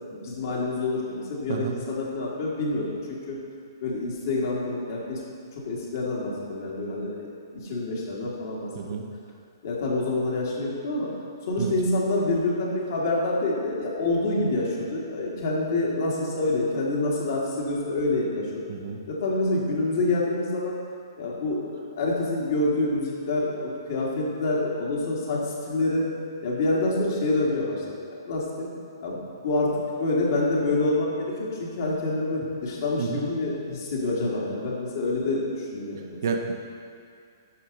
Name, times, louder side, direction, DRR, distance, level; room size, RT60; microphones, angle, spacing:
voice 1, 0.1-3.4 3.8-5.2 5.6-7.2 7.5-8.7 9.6-11.1 11.5-18.5 19.1-20.8 21.2-26.1 26.4-28.7 29.0-29.7 30.0-36.2, left 2 dB, 55° left, -4 dB, 2.0 m, -27 dB
voice 2, 36.2-36.5, right 6 dB, 55° right, 3 dB, 0.8 m, -29 dB
11.0 x 5.6 x 3.9 m, 2.3 s
figure-of-eight pair, 120°, 2 cm